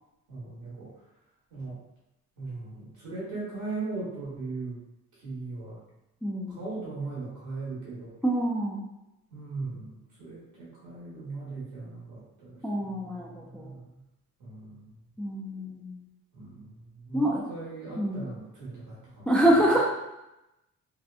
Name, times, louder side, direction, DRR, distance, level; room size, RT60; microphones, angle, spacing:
voice 1, 0.3-0.9 1.5-1.8 2.4-4.8 5.2-5.8 6.5-8.1 9.3-14.0 14.4-14.9 16.3-19.3, right 3 dB, 85° right, -7 dB, 1.2 m, -39 dB
voice 2, 6.2-6.6 8.2-8.8 12.6-13.7 15.2-16.0 17.1-17.4 18.0-18.3 19.3-19.8, right 1 dB, 5° left, -3 dB, 0.3 m, -26 dB
2.7 x 2.2 x 2.5 m, 0.91 s
cardioid pair, 90°, 30 cm